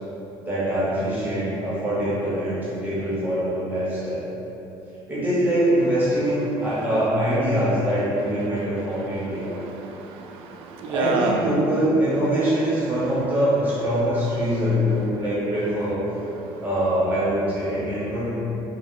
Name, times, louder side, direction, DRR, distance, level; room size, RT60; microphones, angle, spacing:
voice 1, 0.4-4.2 5.1-9.6 10.9-16.1 16.6-18.3, equal, 20° right, -10 dB, 0.9 m, -23 dB
voice 2, 9.4-11.5 16.4-16.6, right 4 dB, 80° right, 3 dB, 0.4 m, -30 dB
3.7 x 2.0 x 3.6 m, 3.0 s
cardioid pair, 135°, 10 cm